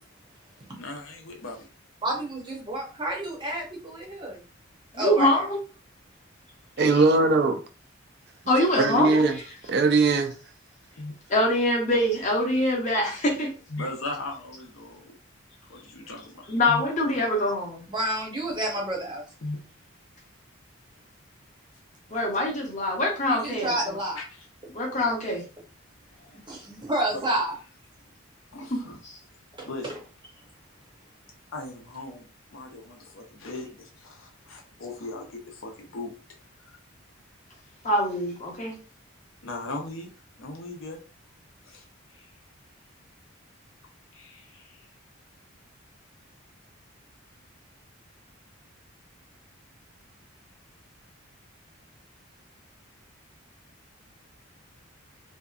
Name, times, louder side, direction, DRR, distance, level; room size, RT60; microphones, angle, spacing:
voice 1, 0.7-1.7 6.8-7.1 10.9-11.1 13.7-15.1 15.6-16.8 19.4-19.6 24.2-24.5 26.2-26.6 27.1-27.2 28.5-29.0 29.7-29.9 31.5-36.1 36.6-36.8 39.4-40.1 40.4-41.0 41.7-41.8 42.1-42.3 44.1-44.9, left 2 dB, 75° left, 0.7 m, -38 dB
voice 2, 2.0-4.4 4.9-5.4 17.9-19.2 23.3-24.2 26.5-27.5 29.6-29.7, right 1 dB, 20° right, 0.7 m, -29 dB
voice 3, 4.9-5.6 8.5-9.4 11.3-13.5 16.5-17.8 22.1-23.8 24.7-25.4 29.0-29.2 37.8-38.7, left 1 dB, 35° left, 0.8 m, -24 dB
voice 4, 6.8-7.6 8.8-9.4 9.7-10.3, right 3 dB, 50° right, 0.3 m, -20 dB
2.7 x 2.3 x 2.4 m
head